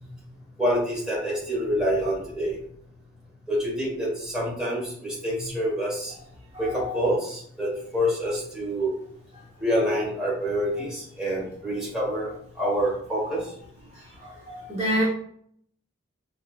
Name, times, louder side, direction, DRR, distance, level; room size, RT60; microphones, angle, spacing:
voice 1, 0.6-2.5 3.5-6.1 6.6-8.9 9.6-12.3 12.6-13.4, equal, 5° right, -6 dB, 1.5 m, -27 dB
voice 2, 6.6-6.9 14.2-15.1, equal, 30° right, -7 dB, 1.2 m, -28 dB
5.2 x 3.3 x 2.5 m, 0.63 s
head